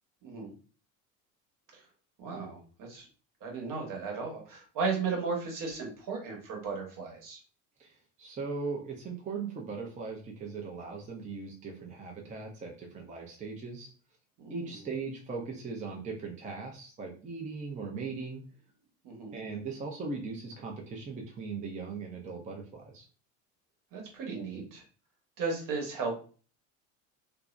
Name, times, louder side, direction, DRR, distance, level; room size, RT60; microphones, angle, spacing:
voice 1, 0.2-0.5 1.7-1.8 2.2-3.1 3.4-7.4 14.4-14.8 19.0-19.3 23.9-24.8 25.4-26.2, right 4 dB, 60° right, 0 dB, 1.0 m, -35 dB
voice 2, 7.8-13.9 14.5-18.4 19.3-23.1, right 4 dB, 20° right, 0 dB, 0.5 m, -39 dB
2.5 x 2.0 x 2.4 m, 0.39 s
supercardioid pair, 90°, 37 cm